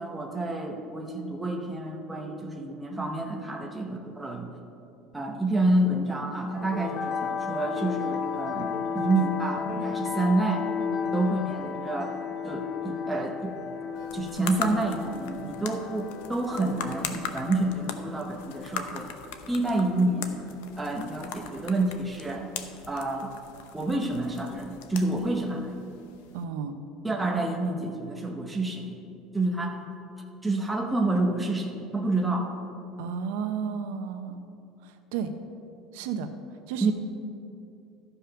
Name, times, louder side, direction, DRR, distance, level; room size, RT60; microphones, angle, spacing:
voice 1, 0.0-4.5 5.1-10.7 11.1-12.2 12.4-13.5 14.1-19.1 19.5-20.5 20.8-22.5 22.9-23.3 23.7-25.7 27.0-29.0 29.3-29.8 30.4-32.5 36.8-36.9, right 2 dB, 5° right, 0 dB, 0.7 m, -28 dB
sound 1, 6.5-20.6, left 6 dB, 40° left, 0.8 m, -34 dB
sound 2, 14.0-26.4, left 7 dB, 85° left, 0.7 m, -40 dB
voice 2, 26.3-26.8 33.0-34.4 34.8-35.3 35.9-36.3 36.7-36.9, right 7 dB, 75° right, 8 dB, 0.7 m, -32 dB
13.0 x 5.5 x 5.7 m, 2.6 s
cardioid pair, 180°, 0 cm